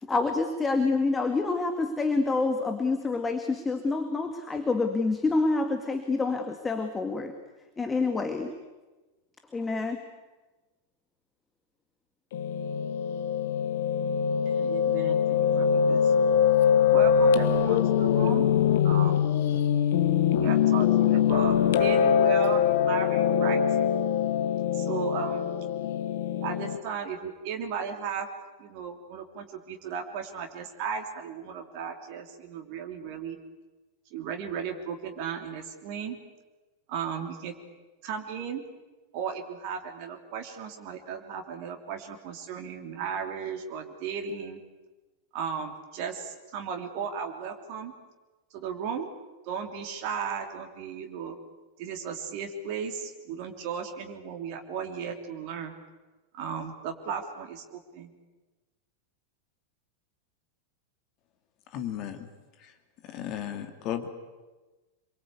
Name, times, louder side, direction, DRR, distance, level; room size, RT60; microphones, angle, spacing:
voice 1, 0.0-7.3 7.8-8.5 9.5-10.0, left 3 dB, 15° left, 7 dB, 2.1 m, -27 dB
Piano, 12.3-26.8, left 8 dB, 55° left, 1.5 m, -23 dB
voice 2, 14.4-16.1 16.9-18.5 18.8-19.3 20.3-23.6 24.7-25.5 26.4-28.3 28.6-33.4 34.1-36.2 36.9-37.5 38.0-38.6 39.1-44.6 45.3-47.9 48.5-49.1 49.4-51.4 51.8-55.7 56.3-58.1, right 6 dB, 45° right, 3 dB, 3.1 m, -35 dB
voice 3, 61.7-62.3 62.6-62.7 63.0-64.1, left 10 dB, 40° left, 7 dB, 2.6 m, -35 dB
27.5 x 23.5 x 8.3 m, 1.2 s
figure-of-eight pair, 90°, 0 cm